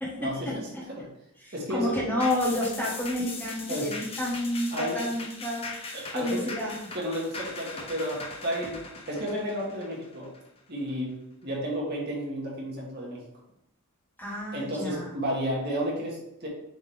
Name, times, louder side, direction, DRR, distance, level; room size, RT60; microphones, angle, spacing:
voice 1, 0.2-0.7 1.0-1.1 1.5-2.0 3.7-3.9 4.7-5.0 5.9-6.4 6.9-8.8 9.1-10.3 10.7-11.2 11.4-13.2 14.5-16.5, equal, 50° right, -3 dB, 1.8 m, -32 dB
voice 2, 1.4-6.8 14.2-15.1, left 1 dB, 10° left, -5 dB, 1.4 m, -30 dB
sound 1, 2.2-10.9 11.3-11.4, left 3 dB, 25° left, 0.8 m, -40 dB
7.0 x 4.1 x 3.4 m, 0.81 s
head